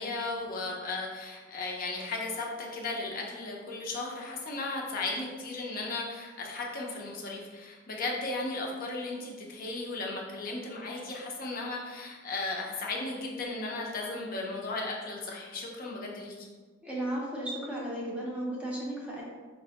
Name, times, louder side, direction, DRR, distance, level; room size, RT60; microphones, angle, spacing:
voice 1, 0.0-16.5, left 3 dB, 45° left, -2 dB, 0.5 m, -35 dB
voice 2, 16.8-19.2, right 1 dB, 5° right, -4 dB, 0.5 m, -34 dB
4.5 x 2.1 x 2.8 m, 1.4 s
head